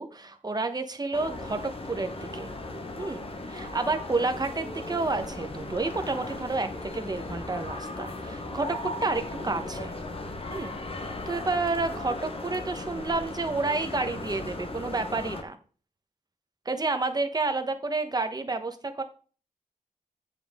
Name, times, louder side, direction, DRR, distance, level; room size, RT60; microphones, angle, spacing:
voice 1, 0.0-2.5 3.0-9.9 10.5-10.8 11.0-15.6 16.6-18.7 19.0-19.1, right 3 dB, 25° right, 7 dB, 1.1 m, -30 dB
sound 1, 1.1-15.4, left 2 dB, 40° left, 1.2 m, -37 dB
8.2 x 7.1 x 3.7 m, 0.39 s
wide cardioid pair, 115°, 14 cm